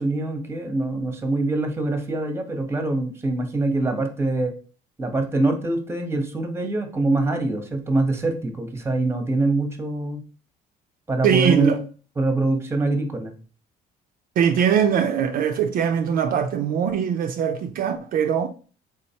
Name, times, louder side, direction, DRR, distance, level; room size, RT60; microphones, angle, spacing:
voice 1, 0.0-4.5 5.0-10.2 11.1-11.8 12.2-13.3, right 2 dB, 15° right, 0.8 m, -24 dB
voice 2, 11.2-11.8 14.4-18.5, right 8 dB, 55° right, 0.4 m, -21 dB
3.7 x 3.1 x 2.7 m
cardioid pair, 110°, 17 cm